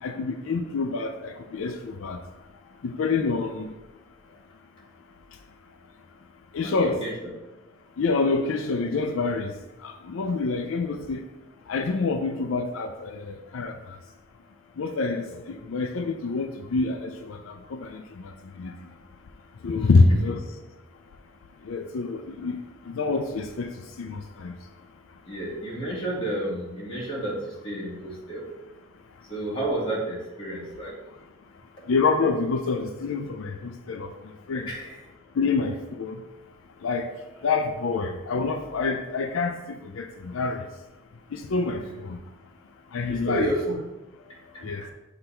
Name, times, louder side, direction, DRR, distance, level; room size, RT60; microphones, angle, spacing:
voice 1, 0.0-2.2 2.8-3.7 6.5-7.0 8.0-9.5 9.8-11.2 11.7-13.8 14.8-18.3 18.6-18.7 19.6-20.4 21.7-22.6 22.9-23.7 24.0-24.5 31.9-34.1 34.5-34.7 35.4-36.2 36.8-37.1 37.4-40.6 41.3-42.2 42.9-43.5 44.6-44.8, left 4 dB, 80° left, 5 dB, 0.4 m, -26 dB
voice 2, 6.6-7.1 15.3-15.4 19.8-20.2 25.3-28.5 29.3-30.9 34.6-35.0 37.3-37.4 41.8-41.9 43.1-43.7 44.2-44.8, right 1 dB, 25° left, -6 dB, 2.0 m, -31 dB
6.0 x 3.3 x 5.6 m, 1.0 s
head